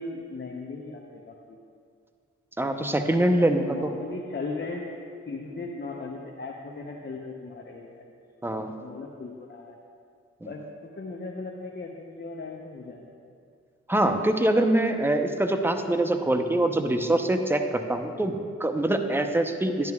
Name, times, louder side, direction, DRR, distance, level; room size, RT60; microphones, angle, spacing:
voice 1, 0.0-1.6 3.2-4.8 5.3-8.1 8.4-9.8 10.4-13.1, left 3 dB, 35° left, -1 dB, 0.9 m, -38 dB
voice 2, 2.6-3.8 8.4-8.7 10.4-10.5 13.9-19.9, right 1 dB, 5° right, 6 dB, 0.7 m, -24 dB
10.5 x 10.5 x 2.4 m, 2.2 s
supercardioid pair, 45°, 30 cm